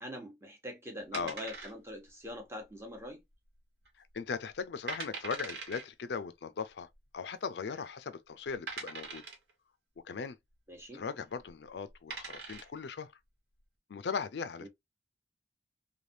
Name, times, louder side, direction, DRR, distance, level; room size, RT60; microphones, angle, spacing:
voice 1, 0.0-3.2 10.7-11.0 14.6-14.7, equal, 15° right, 0.9 m, -44 dB
sound 1, 1.1-2.1 2.4-2.5 3.1-3.5 3.8-3.9 4.5-4.6 4.9-5.8 6.9-7.0 7.7-7.8 8.7-9.5 11.3-11.5 11.9-12.8, right 4 dB, 75° right, 1.2 m, -42 dB
voice 2, 4.1-9.2 10.0-10.4 10.9-13.1 13.9-14.7, left 5 dB, 70° left, 0.4 m, -38 dB
3.2 x 2.3 x 2.6 m
head